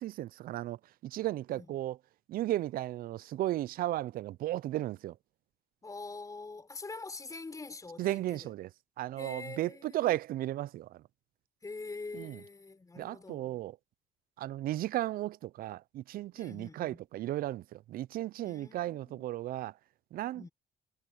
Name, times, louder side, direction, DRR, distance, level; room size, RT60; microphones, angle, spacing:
voice 1, 0.0-2.0 2.3-5.2 8.0-8.7 9.0-11.0 12.1-12.4 13.0-13.7 14.4-19.7 20.1-20.5, right 14 dB, 60° right, 0.4 m, -35 dB
voice 2, 5.8-8.5 9.2-10.2 11.6-13.6 16.3-17.0 18.4-19.3 20.3-20.5, left 3 dB, 20° left, 6.0 m, -45 dB
cardioid pair, 110°, 17 cm